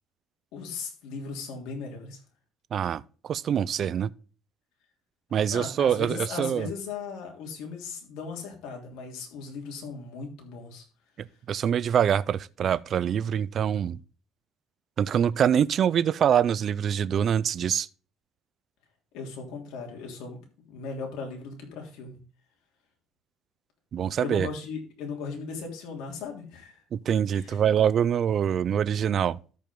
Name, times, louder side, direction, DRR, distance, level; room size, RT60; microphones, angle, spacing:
voice 1, 0.5-2.2 5.5-10.8 19.1-20.4 20.7-22.2 24.2-26.8 27.3-27.6, left 5 dB, 75° left, 3.2 m, -37 dB
voice 2, 2.7-4.1 5.3-6.7 11.2-14.0 15.0-17.9 23.9-24.5 26.9-29.4, right 8 dB, 35° right, 0.3 m, -25 dB
13.5 x 5.2 x 3.6 m
cardioid pair, 175°, 0 cm